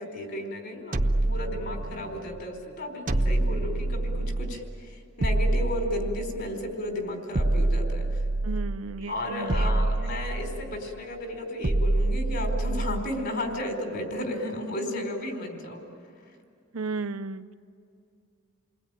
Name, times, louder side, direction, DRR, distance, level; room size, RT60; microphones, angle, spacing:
voice 1, 0.0-8.2 9.1-15.8, left 1 dB, 55° left, 3 dB, 4.3 m, -33 dB
sound 1, 0.9-2.2 3.1-4.7 5.2-6.6 7.3-9.0 9.5-10.9 11.6-13.2, right 2 dB, 40° right, 0.9 m, -26 dB
voice 2, 8.4-9.8 16.7-17.5, right 3 dB, 85° right, 9 dB, 0.8 m, -34 dB
29.0 x 20.0 x 9.0 m, 2.5 s
head